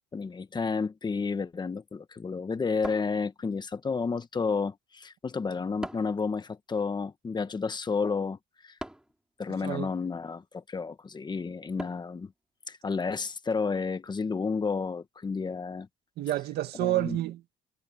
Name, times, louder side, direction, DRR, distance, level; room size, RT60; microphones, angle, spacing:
voice 1, 0.1-8.4 8.6-8.8 9.4-12.3 12.7-15.9 16.8-17.2, left 5 dB, 25° left, 1.3 m, -31 dB
sound 1, 2.8-3.7 5.8-6.3 8.8-9.2 11.8-12.2, right 1 dB, 5° right, 3.2 m, -41 dB
voice 2, 16.2-17.6, right 15 dB, 75° right, 1.9 m, -29 dB
cardioid pair, 110°, 17 cm